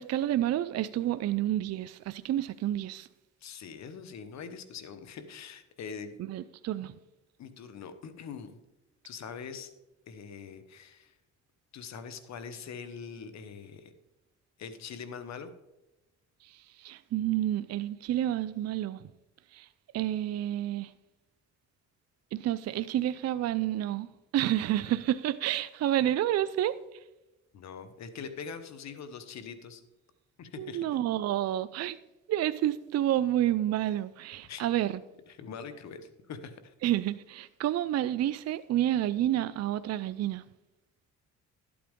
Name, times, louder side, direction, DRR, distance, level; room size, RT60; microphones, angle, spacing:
voice 1, 0.0-3.1 6.2-6.9 16.4-19.0 19.5-19.7 19.9-20.9 22.3-24.1 24.3-26.8 30.6-32.0 32.3-35.0 36.8-40.4, right 12 dB, 55° right, 0.5 m, -29 dB
voice 2, 3.4-6.2 7.4-8.5 9.0-9.7 10.1-11.1 11.7-13.9 14.6-15.5 27.5-29.8 30.4-30.8 34.5-34.7 35.3-36.7, left 6 dB, 65° left, 1.1 m, -43 dB
12.5 x 8.6 x 3.6 m
cardioid pair, 90°, 30 cm